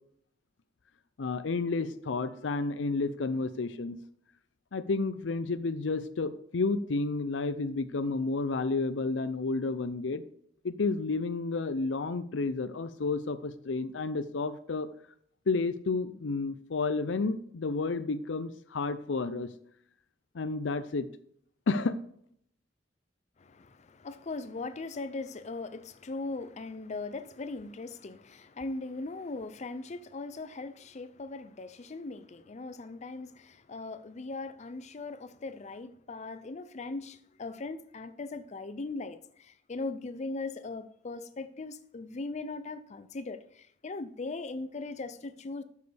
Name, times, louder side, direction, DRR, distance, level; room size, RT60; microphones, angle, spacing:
voice 1, 1.2-4.0 4.7-10.2 10.6-14.9 15.5-19.5 20.3-21.1 21.7-22.0, left 3 dB, 85° left, 0.6 m, -31 dB
voice 2, 23.4-45.6, left 3 dB, 40° left, 0.5 m, -39 dB
12.0 x 6.5 x 3.4 m
head